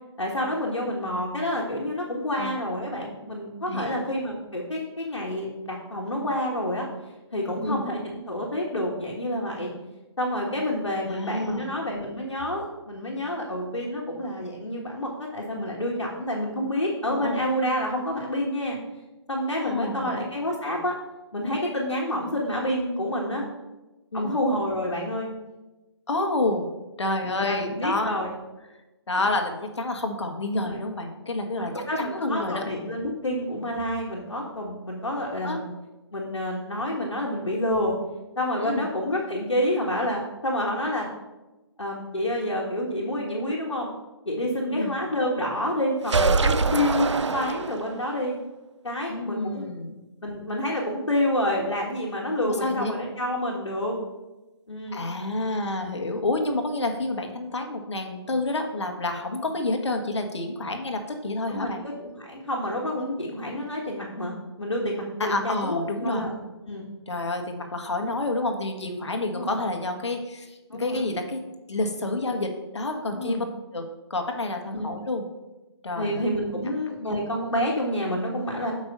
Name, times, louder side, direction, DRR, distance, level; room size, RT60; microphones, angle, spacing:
voice 1, 0.2-6.9 7.3-9.7 10.2-18.8 19.3-20.9 21.3-23.4 24.1-25.3 27.4-28.3 30.6-30.8 31.4-35.7 36.1-37.9 38.4-41.1 41.8-43.9 44.2-48.4 48.8-49.7 50.2-54.0 54.7-55.0 61.5-66.4 66.7-66.8 69.3-69.6 70.7-71.1 73.0-73.5 74.7-74.9 76.0-78.7, left 1 dB, 90° left, -2 dB, 1.5 m, -28 dB
voice 2, 3.7-4.0 7.6-7.9 11.0-11.8 17.1-17.4 19.6-20.3 24.1-24.4 26.1-26.7 27.0-28.1 29.1-32.6 35.4-35.6 38.6-38.9 44.7-44.9 49.1-50.0 52.4-52.9 54.9-61.8 65.2-66.3 67.1-71.4 71.7-73.5 73.7-73.8 74.1-75.3 75.8-76.2 77.0-77.2, left 2 dB, 75° left, 4 dB, 1.4 m, -29 dB
sound 1, 46.0-48.1, right 4 dB, 90° right, 0.5 m, -24 dB
6.8 x 5.3 x 5.3 m, 1.1 s
figure-of-eight pair, 145°, 15 cm